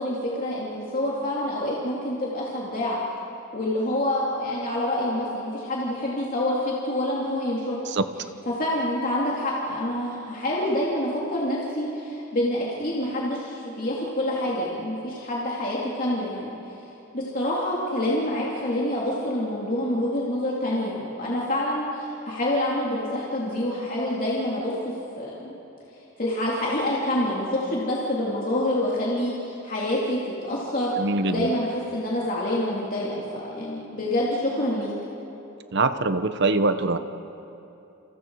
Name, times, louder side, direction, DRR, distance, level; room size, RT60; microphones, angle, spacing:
voice 1, 0.0-3.0 3.5-7.8 8.5-16.5 17.1-24.7 25.2-25.6 26.2-30.9 31.2-34.9, left 1 dB, 40° left, -5 dB, 2.9 m, -27 dB
voice 2, 31.0-31.5 35.7-37.0, right 3 dB, 55° right, 10 dB, 1.0 m, -23 dB
29.5 x 27.0 x 4.8 m, 3.0 s
head